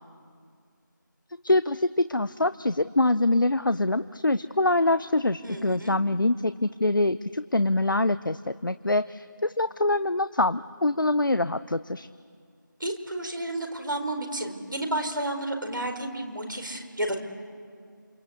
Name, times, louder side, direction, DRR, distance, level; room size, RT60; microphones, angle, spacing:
voice 1, 1.3-12.1, left 2 dB, 75° left, 12 dB, 0.7 m, -24 dB
voice 2, 5.4-5.9 12.8-17.2, right 1 dB, 75° right, 4 dB, 4.8 m, -31 dB
28.0 x 23.5 x 8.3 m, 2.2 s
figure-of-eight pair, 175°, 11 cm